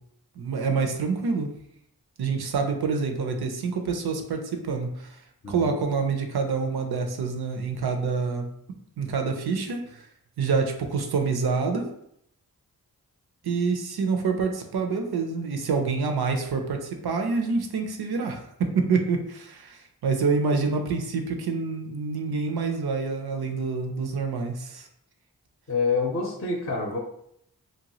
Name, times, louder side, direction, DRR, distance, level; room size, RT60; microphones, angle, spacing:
voice 1, 0.4-1.5 2.2-5.1 5.5-8.5 9.0-9.8 10.4-11.9 13.4-24.9, right 4 dB, 85° right, 4 dB, 0.5 m, -27 dB
voice 2, 25.7-27.0, left 4 dB, 35° left, 1 dB, 0.5 m, -27 dB
2.8 x 2.2 x 2.9 m, 0.73 s
cardioid pair, 40°, 37 cm